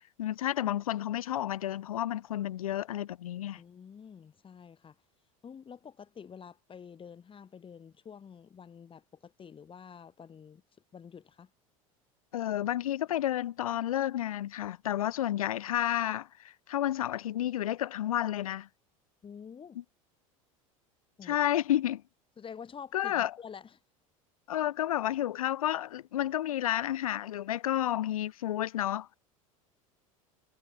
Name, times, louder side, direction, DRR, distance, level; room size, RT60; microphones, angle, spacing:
voice 1, 0.2-3.6 12.3-18.7 21.2-22.0 22.9-23.3 24.5-29.1, left 12 dB, 80° left, 1.3 m, -31 dB
voice 2, 3.6-4.9 5.4-10.6 10.9-11.5 19.2-19.8 21.2-21.4 22.4-23.8, left 7 dB, 30° left, 5.1 m, -48 dB
hypercardioid pair, 80°, 18 cm